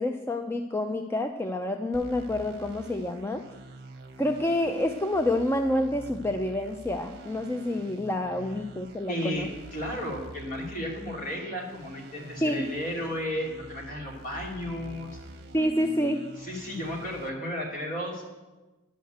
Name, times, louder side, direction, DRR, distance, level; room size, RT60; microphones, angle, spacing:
voice 1, 0.0-3.4 4.2-9.5 12.4-12.7 15.5-16.3, left 1 dB, 10° left, 6 dB, 0.4 m, -28 dB
sound 1, 1.9-17.3, right 1 dB, 55° right, 1.0 m, -46 dB
voice 2, 9.1-15.2 16.4-18.3, equal, 45° left, -1 dB, 2.5 m, -34 dB
10.0 x 6.5 x 7.9 m, 1.2 s
head